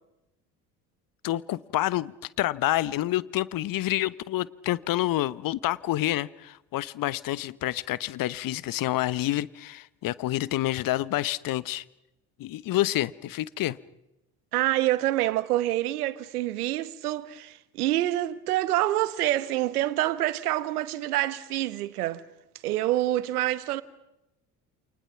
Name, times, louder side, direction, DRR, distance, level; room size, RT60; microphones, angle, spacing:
voice 1, 1.2-2.1 2.4-11.8 12.4-13.8, left 15 dB, 45° left, 1.1 m, -28 dB
voice 2, 14.5-22.2 22.6-23.8, right 15 dB, 70° right, 1.3 m, -27 dB
29.0 x 26.5 x 5.9 m
figure-of-eight pair, 55°, 46 cm